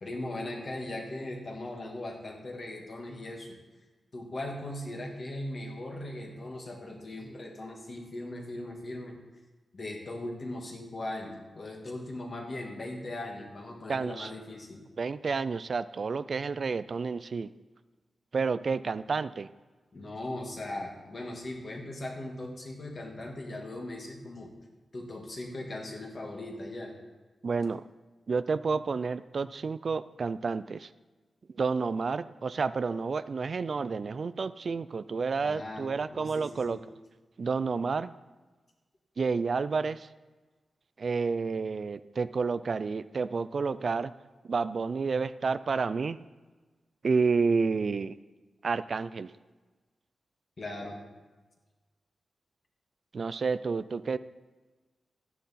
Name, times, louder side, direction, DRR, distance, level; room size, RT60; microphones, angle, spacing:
voice 1, 0.0-3.6 4.1-9.2 9.7-14.8 19.9-24.5 24.9-26.9 35.4-36.8 50.6-51.0, left 1 dB, 35° left, 1 dB, 1.7 m, -39 dB
voice 2, 13.9-14.3 15.0-17.5 18.3-19.5 27.4-27.8 28.3-30.9 31.5-36.8 37.4-38.1 39.2-40.1 41.0-44.1 44.4-46.2 47.0-48.2 48.6-49.3 53.1-54.2, right 4 dB, 45° right, 15 dB, 0.3 m, -30 dB
13.0 x 10.0 x 4.2 m, 1.3 s
wide cardioid pair, 175°, 0 cm